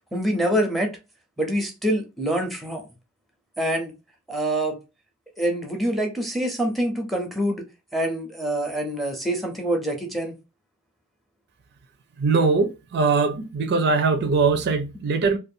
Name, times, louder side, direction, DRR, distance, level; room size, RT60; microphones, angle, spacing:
voice 1, 0.1-0.9 1.4-2.8 3.6-3.9 4.3-4.8 5.4-7.6 7.9-10.4, right 1 dB, ahead, 0.6 m, -25 dB
voice 2, 12.2-15.4, right 4 dB, 50° right, 0.4 m, -21 dB
2.5 x 2.2 x 2.6 m
head